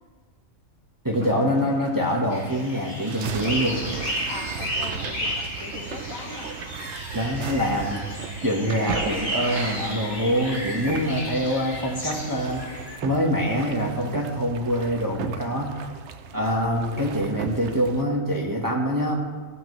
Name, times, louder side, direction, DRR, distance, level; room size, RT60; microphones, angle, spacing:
voice 1, 1.0-3.8 7.1-8.0 8.4-12.6 13.0-15.8 16.3-19.1, equal, 15° right, -2 dB, 1.2 m, -25 dB
sound 1, 1.1-18.0, right 6 dB, 65° right, 0.9 m, -36 dB
sound 2, 1.2-2.0 2.4-4.2 5.0-6.1, left 1 dB, 30° left, 1.0 m, -43 dB
sound 3, 2.3-13.0, equal, 45° left, 2.6 m, -33 dB
voice 2, 4.3-5.3 5.6-6.5, left 4 dB, 75° left, 4 dB, 1.5 m, -39 dB
17.0 x 7.7 x 3.1 m, 1.4 s
omnidirectional pair, 1.4 m